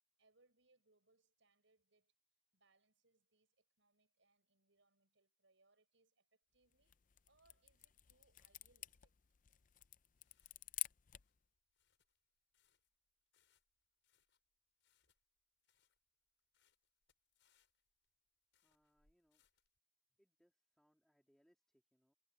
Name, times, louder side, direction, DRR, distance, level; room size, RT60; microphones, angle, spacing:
voice 1, 0.2-2.1 2.5-6.9 7.3-9.2, right 3 dB, 75° right, 5.2 m, -77 dB
sound 1, 6.7-11.4, left 14 dB, 40° left, 0.5 m, -50 dB
sound 2, 10.1-19.8, left 7 dB, 70° left, 5.5 m, -82 dB
voice 2, 18.6-19.4 20.2-22.1, equal, ahead, 2.9 m, -78 dB
head